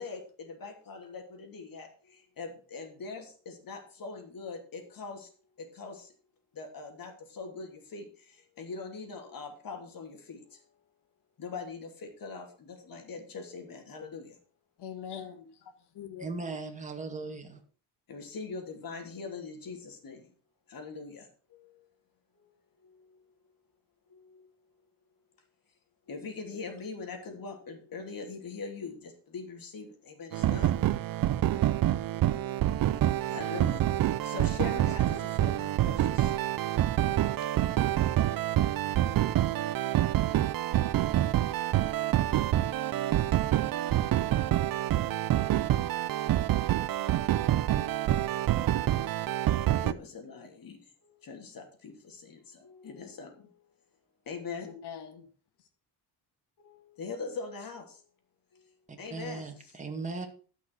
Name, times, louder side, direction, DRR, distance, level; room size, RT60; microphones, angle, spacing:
voice 1, 0.0-5.3 5.6-6.1 6.5-10.8 11.4-14.4 18.1-20.3 20.7-21.9 22.3-22.5 22.8-23.3 24.1-24.5 26.1-30.8 32.1-32.9 33.3-36.3 43.3-43.4 49.6-53.7 54.2-54.7 56.6-58.1 58.5-59.8, left 4 dB, 55° left, 3.2 m, -43 dB
voice 2, 14.8-16.3 54.6-55.3, left 8 dB, 70° left, 2.0 m, -43 dB
voice 3, 16.2-17.6 58.9-60.3, right 3 dB, 15° right, 2.2 m, -38 dB
sound 1, 30.3-49.9, right 13 dB, 55° right, 0.7 m, -27 dB
12.5 x 6.1 x 6.2 m
cardioid pair, 105°, 42 cm